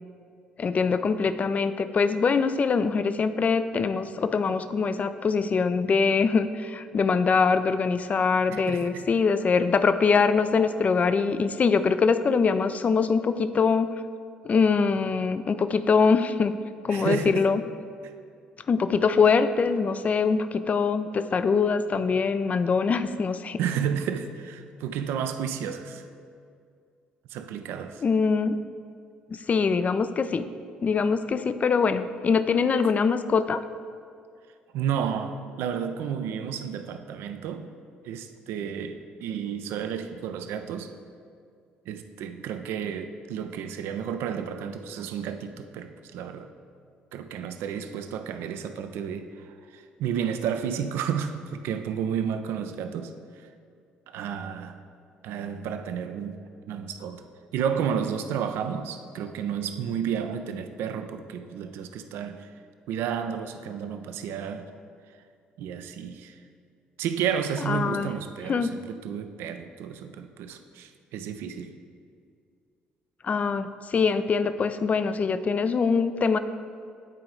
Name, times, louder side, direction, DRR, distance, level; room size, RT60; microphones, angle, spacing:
voice 1, 0.6-13.9 14.4-16.6 16.8-17.6 18.7-23.6 28.0-28.6 29.3-30.5 30.8-33.6 67.7-68.1 68.5-68.7 73.2-76.4, left 5 dB, 35° left, 11 dB, 0.4 m, -23 dB
voice 2, 8.5-9.0 16.9-17.5 18.0-18.1 23.6-26.1 27.3-28.0 34.7-37.7 38.0-40.9 41.9-46.5 47.1-53.5 54.1-54.8 55.2-56.4 56.7-57.2 57.5-62.5 62.9-64.7 65.6-66.4 67.0-71.7, right 8 dB, 60° right, 8 dB, 0.4 m, -32 dB
9.0 x 4.7 x 3.8 m, 2.3 s
figure-of-eight pair, 50°, 4 cm